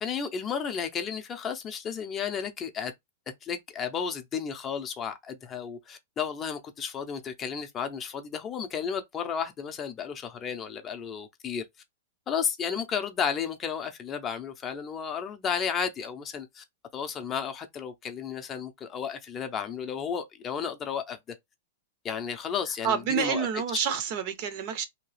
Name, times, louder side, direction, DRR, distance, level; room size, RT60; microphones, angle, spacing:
voice 1, 0.0-2.9 3.4-11.6 12.3-16.6 16.9-21.2 22.0-23.5, left 7 dB, 20° left, 0.5 m, -33 dB
voice 2, 22.8-24.8, right 7 dB, 45° right, 0.5 m, -28 dB
2.8 x 2.3 x 3.1 m
supercardioid pair, 155°, 0 cm